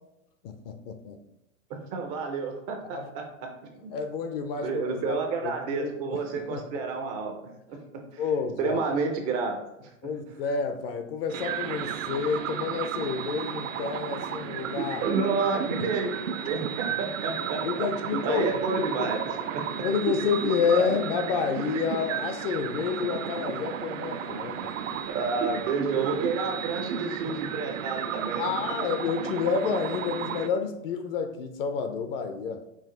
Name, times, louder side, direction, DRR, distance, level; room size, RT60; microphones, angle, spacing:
voice 1, 0.4-1.2 2.9-3.1 3.9-5.2 5.4-6.6 8.2-8.8 10.0-15.0 17.6-19.1 19.8-24.7 28.4-32.6, left 6 dB, 45° left, 7 dB, 0.5 m, -29 dB
voice 2, 1.7-3.9 4.6-8.2 8.6-10.1 15.0-16.1 16.4-19.6 20.7-20.9 25.1-28.6, right 4 dB, 20° right, 3 dB, 0.3 m, -30 dB
sound 1, 11.3-30.5, right 8 dB, 70° right, 0.6 m, -33 dB
5.7 x 2.4 x 3.7 m, 0.87 s
hypercardioid pair, 120°, 40 cm